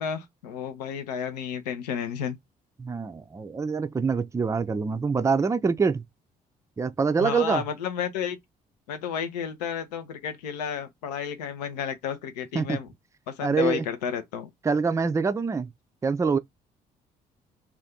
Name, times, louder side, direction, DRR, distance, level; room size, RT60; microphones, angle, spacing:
voice 1, 0.0-2.4 7.2-8.4 8.9-12.9 13.3-14.5, left 8 dB, 90° left, 0.5 m, -32 dB
voice 2, 2.8-6.0 6.8-7.6 12.5-12.8 13.4-13.8 14.6-15.7 16.0-16.4, right 5 dB, 15° right, 0.4 m, -25 dB
2.5 x 2.3 x 3.5 m
hypercardioid pair, 50°, 20 cm